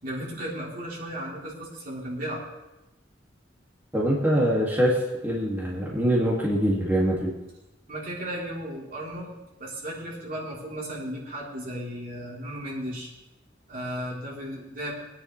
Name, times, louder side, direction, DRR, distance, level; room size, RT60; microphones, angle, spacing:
voice 1, 0.0-2.4 7.9-13.1 13.7-14.9, equal, 45° right, -4 dB, 3.6 m, -35 dB
voice 2, 3.9-7.3, equal, 10° right, -6 dB, 2.3 m, -24 dB
22.0 x 10.0 x 3.3 m, 0.98 s
head